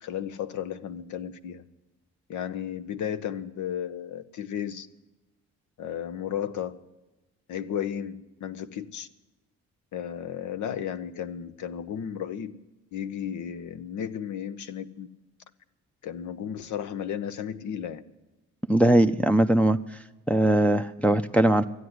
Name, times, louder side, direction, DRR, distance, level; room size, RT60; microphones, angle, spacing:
voice 1, 0.0-1.6 2.3-4.9 5.8-6.8 7.5-9.1 9.9-12.5 12.9-15.1 16.0-18.0, left 9 dB, 75° left, 11 dB, 0.9 m, -34 dB
voice 2, 18.7-19.8 20.3-21.7, right 1 dB, 5° left, 5 dB, 0.5 m, -20 dB
13.0 x 9.5 x 9.5 m, 1.1 s
cardioid pair, 90°, 30 cm